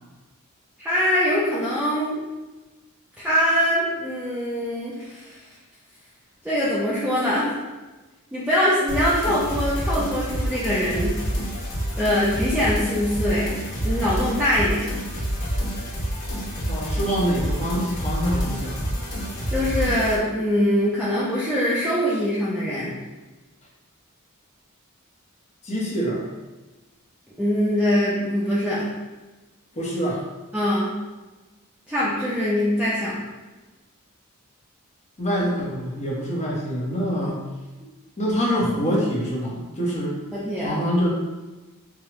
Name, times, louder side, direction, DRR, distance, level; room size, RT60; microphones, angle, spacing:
voice 1, 0.8-2.2 3.2-5.3 6.4-7.6 8.3-11.2 12.0-15.0 19.5-23.0 27.4-28.9 30.5-30.9 31.9-33.2 40.3-40.7, equal, 5° right, -9 dB, 0.6 m, -23 dB
sound 1, 8.9-20.2, equal, 75° left, 1.4 m, -28 dB
voice 2, 16.6-19.0 25.6-26.3 29.8-30.2 35.2-37.4 38.2-40.2 40.6-41.2, equal, 30° left, -4 dB, 1.0 m, -25 dB
4.8 x 2.3 x 3.0 m, 1.2 s
head